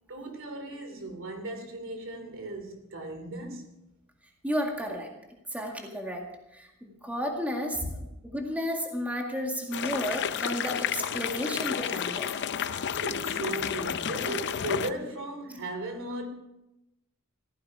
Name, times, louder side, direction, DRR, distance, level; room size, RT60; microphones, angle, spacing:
voice 1, 0.1-3.7 7.8-7.9 13.0-16.3, right 2 dB, 60° right, 2.8 m, -36 dB
voice 2, 4.4-5.1 5.5-6.3 6.5-12.3, equal, 5° right, 1.9 m, -32 dB
sound 1, 9.7-14.9, left 8 dB, 50° left, 0.6 m, -31 dB
15.5 x 14.0 x 4.8 m
head